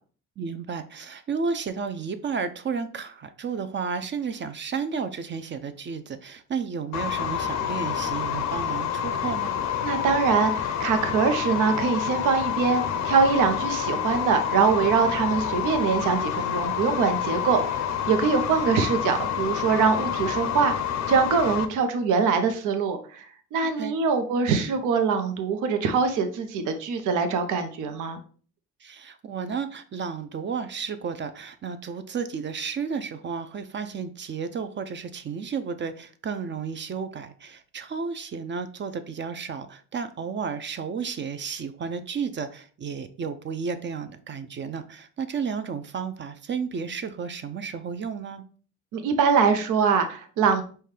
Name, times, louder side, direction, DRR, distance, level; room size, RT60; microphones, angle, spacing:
voice 1, 0.4-9.6 23.8-23.9 28.8-48.4, right 5 dB, 40° right, 10 dB, 0.4 m, -32 dB
sound 1, 6.9-21.7, left 9 dB, 65° left, 0.5 m, -28 dB
voice 2, 9.8-17.8 18.1-20.7 21.1-23.3 23.5-28.2 48.9-50.6, right 5 dB, 90° right, 7 dB, 0.7 m, -23 dB
5.5 x 2.2 x 3.2 m, 0.42 s
cardioid pair, 90°, 30 cm